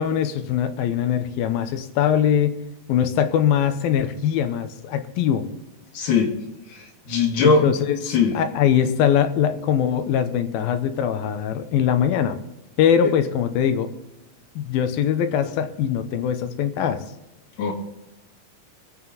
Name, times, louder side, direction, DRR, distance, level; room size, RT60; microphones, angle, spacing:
voice 1, 0.0-2.6 2.9-5.4 7.4-8.0 8.3-12.4 12.8-13.9 14.6-17.0, left 9 dB, 90° left, 9 dB, 2.8 m, -22 dB
voice 2, 5.9-6.3 6.7-7.7 8.0-8.3 13.0-13.1 17.6-17.7, left 4 dB, 70° left, 3 dB, 3.2 m, -20 dB
23.0 x 7.9 x 4.0 m, 0.95 s
omnidirectional pair, 4.1 m